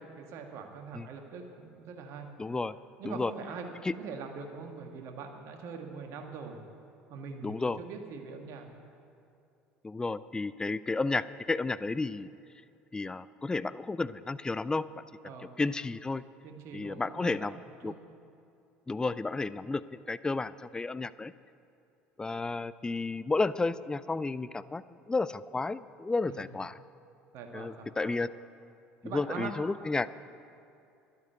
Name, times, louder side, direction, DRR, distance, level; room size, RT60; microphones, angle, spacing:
voice 1, 0.0-2.3 3.0-6.6 7.1-8.7 15.2-15.6 16.4-17.3 17.6-18.0 26.3-26.5 27.3-28.2 29.0-29.5, right 5 dB, 55° right, 4 dB, 1.6 m, -43 dB
voice 2, 2.4-2.8 3.0-3.3 3.9-4.0 7.4-7.8 9.8-12.3 12.9-14.8 15.6-16.2 16.7-17.6 17.8-17.9 18.9-21.3 22.2-26.8 27.5-28.3 29.1-30.1, left 3 dB, 15° left, 16 dB, 0.4 m, -32 dB
11.5 x 9.3 x 7.8 m, 2.6 s
figure-of-eight pair, 65°, 6 cm